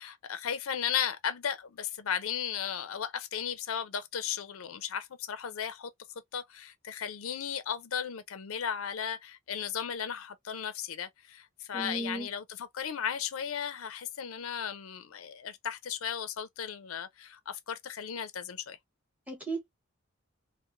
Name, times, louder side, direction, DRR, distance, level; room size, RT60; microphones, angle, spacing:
voice 1, 0.0-5.9 6.3-18.8, left 8 dB, 80° left, 0.5 m, -35 dB
voice 2, 11.7-12.3 19.3-19.7, right 2 dB, 5° right, 0.9 m, -35 dB
3.0 x 2.1 x 2.4 m
head